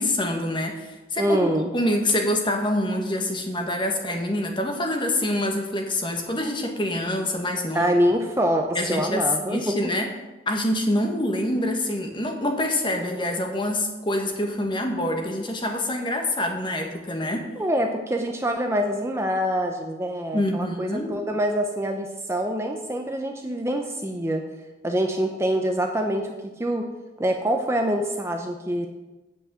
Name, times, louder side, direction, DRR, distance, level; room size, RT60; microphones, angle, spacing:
voice 1, 0.0-1.5 1.7-7.9 8.7-10.1 10.5-17.5 20.3-21.2, left 1 dB, 25° left, 3 dB, 1.3 m, -26 dB
voice 2, 1.2-1.7 7.7-9.9 17.6-24.5 24.8-26.9 27.2-28.9, equal, 15° right, 3 dB, 0.6 m, -25 dB
8.3 x 5.3 x 7.7 m, 1.1 s
head